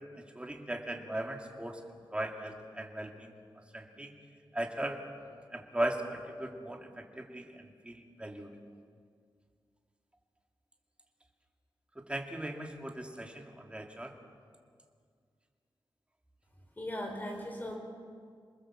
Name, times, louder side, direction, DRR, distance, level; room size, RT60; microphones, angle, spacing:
voice 1, 0.2-1.8 2.1-3.3 3.7-4.1 4.5-5.0 5.5-8.5 12.0-14.1, right 1 dB, 15° right, 2 dB, 2.5 m, -38 dB
voice 2, 16.8-17.8, left 1 dB, 20° left, 2 dB, 4.8 m, -38 dB
28.0 x 20.0 x 7.5 m, 2.1 s
wide cardioid pair, 140°, 9 cm